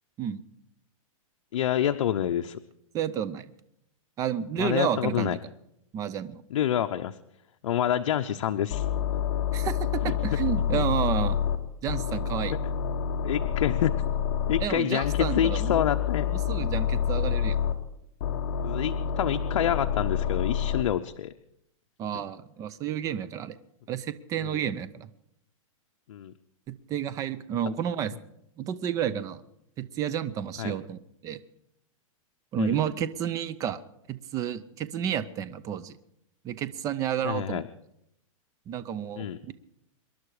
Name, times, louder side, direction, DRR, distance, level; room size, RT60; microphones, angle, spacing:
voice 1, 1.5-2.6 4.6-5.4 6.5-7.2 7.6-8.8 10.1-10.2 10.7-10.8 13.2-14.0 14.5-16.3 18.6-21.3 24.4-24.6 26.1-26.3 30.6-30.7 32.6-32.8 37.2-37.6 39.2-39.4, left 10 dB, 75° left, 7 dB, 0.8 m, -27 dB
voice 2, 2.9-3.5 4.2-5.4 5.9-6.4 9.5-11.4 11.8-12.6 14.6-15.8 16.3-17.6 22.0-23.6 23.9-25.1 26.7-28.1 28.6-29.4 29.8-31.4 32.5-33.8 34.1-35.9 36.4-37.6 38.7-39.5, right 9 dB, 20° right, 14 dB, 0.7 m, -31 dB
sound 1, 8.7-11.6 11.9-14.7 15.0-17.7 18.2-20.8, left 9 dB, 45° left, 1.6 m, -28 dB
26.0 x 11.5 x 4.9 m, 0.80 s
hypercardioid pair, 160°, 18 cm